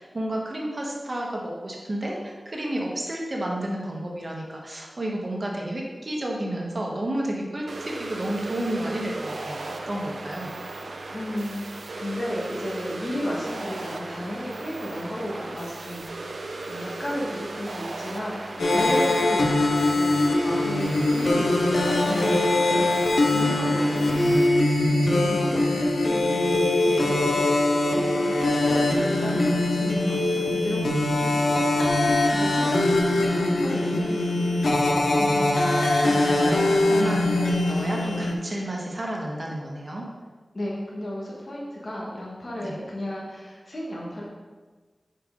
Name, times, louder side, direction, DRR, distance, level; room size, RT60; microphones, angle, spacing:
voice 1, 0.0-10.5 18.8-19.0 23.4-23.6 26.8-27.0 32.3-32.8 35.2-40.0 42.6-42.8, right 1 dB, 40° right, -1 dB, 1.2 m, -31 dB
sound 1, 7.7-24.5, right 2 dB, 70° right, 0.6 m, -36 dB
voice 2, 11.1-16.0 16.6-26.2 26.5-27.4 27.9-31.8 32.3-34.5 36.8-37.3 40.5-44.2, left 1 dB, 50° left, -5 dB, 1.4 m, -34 dB
sound 2, 18.6-38.3, left 2 dB, 85° left, 0.8 m, -22 dB
5.4 x 4.5 x 5.1 m, 1.3 s
wide cardioid pair, 75°, 0 cm